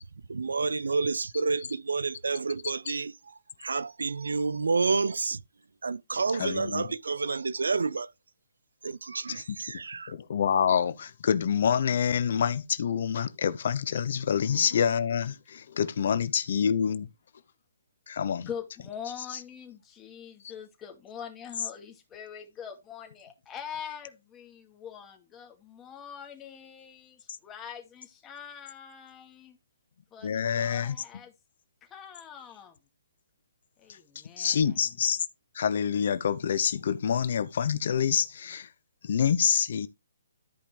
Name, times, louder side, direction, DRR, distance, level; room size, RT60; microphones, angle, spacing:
voice 1, 0.3-5.4 5.8-8.1 8.8-10.1, right 4 dB, 85° right, 0.5 m, -29 dB
voice 2, 6.4-6.8 9.3-9.6 10.1-17.1 18.1-18.5 30.2-31.0 34.4-35.2 35.5-38.7 39.0-39.9, left 7 dB, 55° left, 0.7 m, -27 dB
voice 3, 18.5-29.6 30.1-31.3 31.8-32.8 33.8-35.0, left 8 dB, 15° left, 2.2 m, -43 dB
13.0 x 5.2 x 3.3 m
hypercardioid pair, 150°, 0 cm